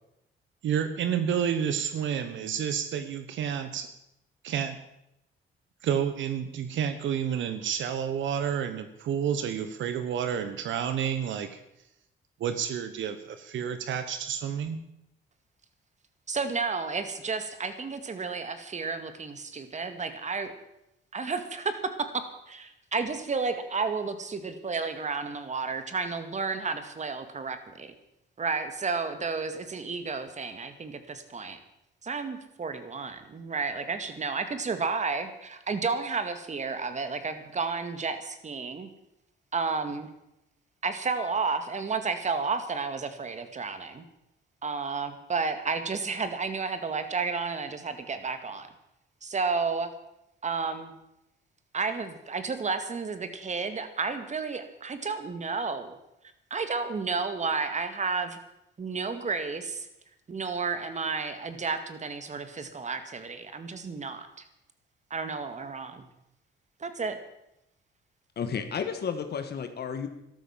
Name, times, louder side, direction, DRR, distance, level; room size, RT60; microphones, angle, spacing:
voice 1, 0.6-3.9 4.4-4.8 5.8-11.6 12.4-14.8, right 8 dB, 75° right, 10 dB, 1.2 m, -30 dB
voice 2, 16.3-20.5 21.1-27.9 28.4-31.6 32.0-38.9 39.5-40.1 40.8-44.0 44.6-48.7 49.2-49.9 50.4-50.9 51.7-56.0 56.5-58.4 58.8-59.9 60.3-64.4 65.1-66.1 66.8-67.2, right 4 dB, 35° right, 9 dB, 2.2 m, -32 dB
voice 3, 68.4-70.1, left 6 dB, 55° left, 8 dB, 1.7 m, -32 dB
13.0 x 12.5 x 7.3 m, 0.84 s
cardioid pair, 90°, 20 cm